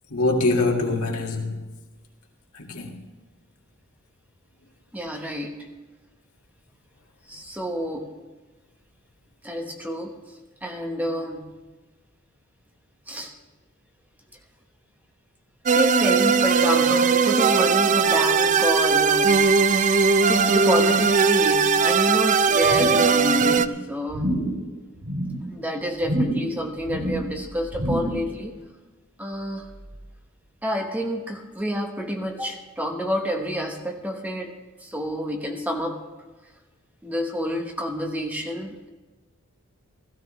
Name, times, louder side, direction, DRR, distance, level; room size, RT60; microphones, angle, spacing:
voice 1, 0.1-1.7 2.5-3.0, left 2 dB, 75° left, 1.9 m, -24 dB
voice 2, 4.9-5.7 7.3-8.1 9.4-10.1 10.6-11.4 13.1-13.3 15.7-19.9 20.3-24.5 25.5-28.5 29.2-29.7 30.6-34.5 34.8-36.0 37.0-38.9, equal, 5° right, 1.0 m, -28 dB
sound 1, 15.7-23.7, right 5 dB, 35° right, 0.3 m, -19 dB
sound 2, 22.6-23.1 23.4-23.7 24.1-24.6 25.0-25.4 26.0-26.5 26.8-27.3 27.7-28.3 28.6-28.7, right 1 dB, 55° right, 3.3 m, -28 dB
16.5 x 14.5 x 3.2 m
head